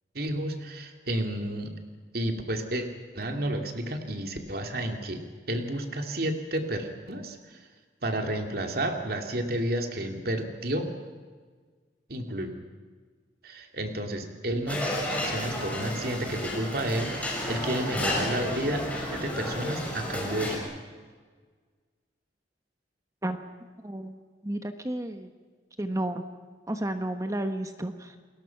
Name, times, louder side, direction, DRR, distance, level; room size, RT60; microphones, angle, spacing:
voice 1, 0.1-1.7 2.1-2.9 3.1-5.2 5.5-7.6 8.0-10.9 12.1-12.5 13.4-14.8 15.2-18.8 19.1-20.6, right 1 dB, 55° right, 4 dB, 2.7 m, -31 dB
sound 1, 14.7-20.6, left 1 dB, 10° left, 5.7 m, -32 dB
voice 2, 23.8-24.2 24.4-25.3 25.8-26.3 26.7-28.2, right 1 dB, 20° right, 7 dB, 1.2 m, -32 dB
30.0 x 21.0 x 5.9 m, 1.5 s
head